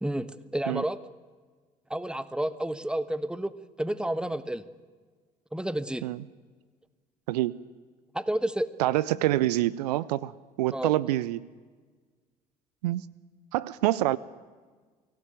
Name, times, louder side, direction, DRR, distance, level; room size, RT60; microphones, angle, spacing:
voice 1, 0.0-1.0 1.9-3.5 3.8-4.6 5.5-6.0 8.1-8.7 10.7-10.9, right 1 dB, 5° right, 15 dB, 1.3 m, -30 dB
voice 2, 7.3-7.6 8.8-10.3 10.6-11.5 12.8-13.0 13.5-14.2, right 15 dB, 75° right, 20 dB, 0.6 m, -26 dB
24.0 x 17.0 x 9.2 m, 1.5 s
figure-of-eight pair, 55°, 21 cm